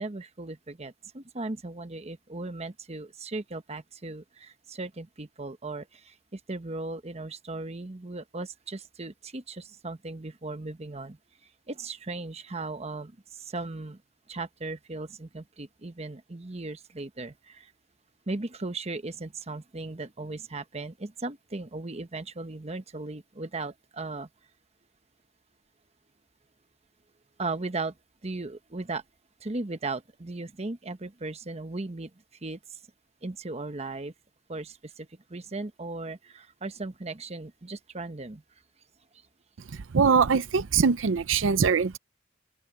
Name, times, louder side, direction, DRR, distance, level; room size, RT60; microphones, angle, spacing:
voice 1, 0.0-11.2 11.7-14.0 14.3-17.7 18.3-24.3 27.4-27.9 28.2-29.0 29.4-32.1 32.4-32.6 33.2-34.1 34.5-38.4, right 3 dB, 35° right, 1.0 m, -37 dB
voice 2, 39.9-42.0, right 5 dB, 80° right, 0.6 m, -22 dB
open air
head